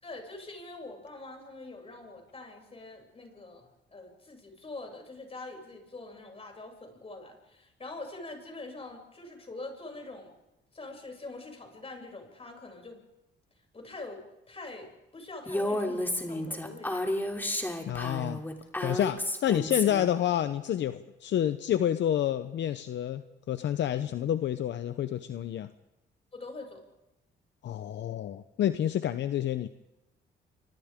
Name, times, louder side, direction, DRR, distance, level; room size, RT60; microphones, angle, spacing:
voice 1, 0.0-10.3 10.7-13.0 13.7-17.3 26.3-26.8, left 2 dB, 30° left, 2 dB, 7.2 m, -44 dB
Female speech woman speaking, 15.5-20.1, left 1 dB, 10° left, 3.1 m, -32 dB
voice 2, 17.9-18.4 18.8-23.2 23.5-25.7 27.6-29.7, left 11 dB, 65° left, 11 dB, 0.8 m, -29 dB
30.0 x 25.5 x 3.7 m, 0.95 s
cardioid pair, 90°, 20 cm